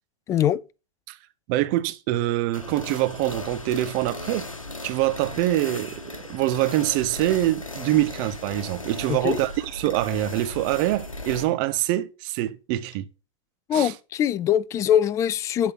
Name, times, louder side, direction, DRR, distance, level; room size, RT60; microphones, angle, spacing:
voice 1, 0.3-0.6 9.1-9.4 13.7-15.7, left 10 dB, 20° left, 0.4 m, -22 dB
voice 2, 1.5-4.5 4.8-6.0 6.3-13.1 13.7-13.9, right 15 dB, 40° right, 1.0 m, -25 dB
sound 1, 2.5-11.5, left 2 dB, 90° left, 1.0 m, -37 dB
11.0 x 4.0 x 5.9 m
figure-of-eight pair, 105°, 17 cm